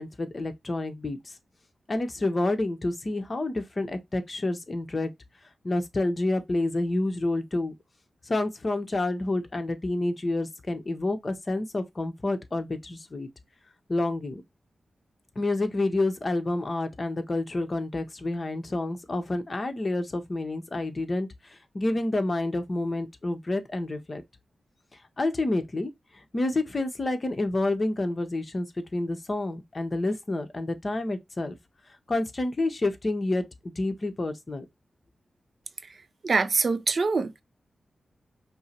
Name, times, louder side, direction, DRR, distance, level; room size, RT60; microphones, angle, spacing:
voice 1, 0.0-1.3 1.9-5.1 5.6-7.7 8.3-13.3 13.9-14.4 15.4-24.2 25.2-31.6 32.1-33.4 33.8-34.6, left 2 dB, 40° left, 0.9 m, -29 dB
voice 2, 36.2-37.4, right 4 dB, 55° right, 0.5 m, -24 dB
5.4 x 2.0 x 4.3 m
cardioid pair, 60°, 0 cm